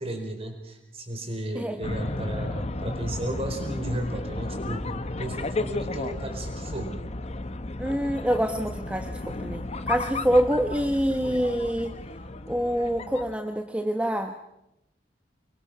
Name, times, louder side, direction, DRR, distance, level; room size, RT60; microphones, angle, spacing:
voice 1, 0.0-4.9 5.2-7.0, right 1 dB, 30° right, 4 dB, 4.5 m, -34 dB
sound 1, 1.8-13.4, left 2 dB, 35° left, 1.0 m, -33 dB
voice 2, 7.8-11.9 12.5-14.3, equal, 5° right, 5 dB, 1.0 m, -26 dB
25.5 x 22.5 x 6.0 m, 0.87 s
head